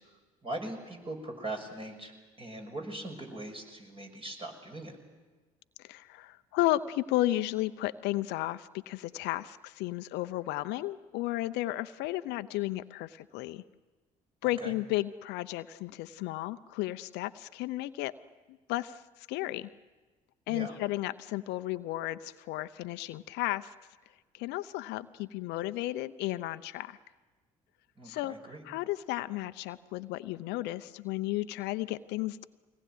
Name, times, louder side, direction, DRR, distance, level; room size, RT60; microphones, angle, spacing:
voice 1, 0.0-5.0 14.4-14.8 20.5-20.8 28.0-28.6, right 2 dB, 30° right, 3 dB, 6.3 m, -41 dB
voice 2, 5.8-13.6 14.4-18.1 18.7-19.0 19.3-19.7 20.5-23.7 24.3-27.0 28.0-28.3 28.7-32.4, left 16 dB, 70° left, 13 dB, 0.7 m, -33 dB
24.0 x 19.0 x 9.3 m, 1.3 s
hypercardioid pair, 60°, 18 cm